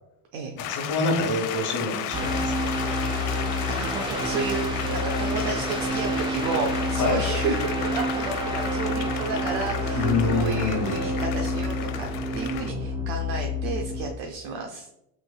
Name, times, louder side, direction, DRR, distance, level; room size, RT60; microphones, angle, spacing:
voice 1, 0.5-2.7 7.0-7.2 9.9-11.0, left 3 dB, 40° left, 3 dB, 1.1 m, -26 dB
sound 1, 0.6-12.7, left 11 dB, 80° left, 0.5 m, -35 dB
sound 2, 2.1-14.1, left 1 dB, 10° right, 0.3 m, -28 dB
voice 2, 3.3-12.1 12.3-14.9, right 4 dB, 70° right, 2 dB, 0.6 m, -32 dB
3.3 x 3.2 x 2.3 m, 0.84 s
supercardioid pair, 90°, 44 cm